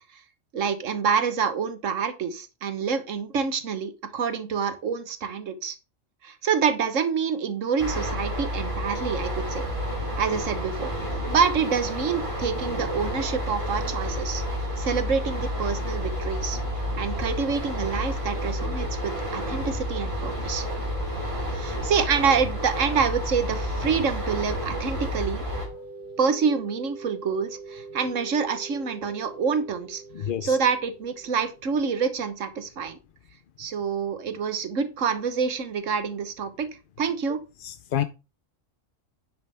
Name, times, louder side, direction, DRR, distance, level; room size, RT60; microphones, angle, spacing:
voice 1, 0.5-5.7 6.2-9.6 10.2-10.9 11.3-14.4 14.8-16.6 16.9-20.6 21.5-25.4 26.2-30.0 30.4-33.0 33.6-36.7 37.0-37.4, right 6 dB, 70° right, 1.6 m, -27 dB
sound 1, 7.8-25.7, equal, 25° right, 3.0 m, -30 dB
sound 2, 25.5-32.1, right 4 dB, 40° right, 1.5 m, -43 dB
voice 2, 30.1-30.6 37.6-38.0, left 10 dB, 55° left, 0.6 m, -28 dB
10.5 x 7.6 x 3.5 m
omnidirectional pair, 1.4 m